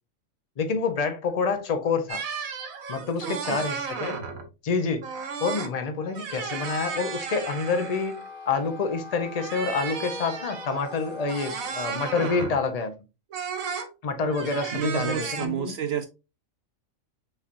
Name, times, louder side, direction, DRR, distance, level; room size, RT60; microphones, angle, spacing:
voice 1, 0.6-2.2 2.9-4.2 4.6-5.0 5.4-8.2 8.5-12.9 14.0-15.8, left 4 dB, 40° left, 0.6 m, -27 dB
sound 1, 2.1-4.5 5.0-5.7 6.0-8.3 9.3-12.6 13.3-13.9 14.3-15.5, right 5 dB, 85° right, 1.2 m, -34 dB
voice 2, 3.2-3.6 12.2-12.6 14.7-16.1, right 8 dB, 65° right, 0.7 m, -31 dB
Wind instrument woodwind instrument, 6.3-12.0, left 3 dB, 70° left, 1.5 m, -42 dB
5.6 x 3.3 x 2.5 m
omnidirectional pair, 1.4 m